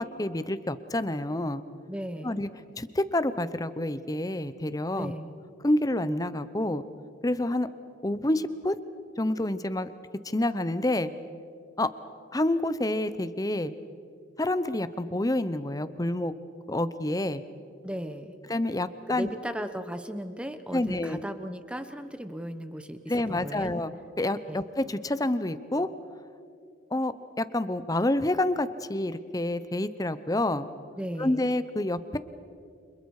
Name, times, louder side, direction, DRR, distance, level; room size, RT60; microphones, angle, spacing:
voice 1, 0.0-1.6 2.2-2.5 2.8-5.1 5.6-6.8 7.2-7.7 8.0-8.8 9.2-9.9 10.2-11.1 11.8-11.9 12.3-13.7 14.4-16.3 16.7-17.4 18.5-19.3 20.7-21.2 23.1-23.9 24.2-25.9 26.9-30.7 31.2-32.2, left 1 dB, 20° left, 13 dB, 0.7 m, -28 dB
voice 2, 1.9-2.3 4.9-5.3 17.8-18.3 19.1-23.7 24.5-24.6 31.0-31.5, equal, 5° right, 9 dB, 1.0 m, -36 dB
30.0 x 26.5 x 4.9 m, 2.4 s
head